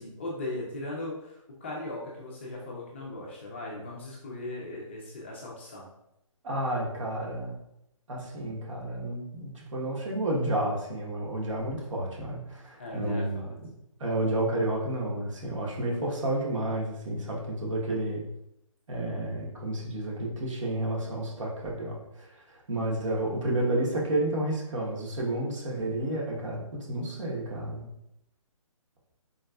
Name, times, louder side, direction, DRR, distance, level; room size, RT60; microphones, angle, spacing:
voice 1, 0.0-5.9 12.8-13.5, left 1 dB, 20° left, -4 dB, 0.4 m, -38 dB
voice 2, 6.4-7.6 8.1-13.4 14.0-18.2 18.9-22.0 22.7-26.6 26.9-27.9, right 1 dB, 65° right, -2 dB, 1.0 m, -30 dB
3.9 x 2.5 x 2.3 m, 0.83 s
hypercardioid pair, 160°, 18 cm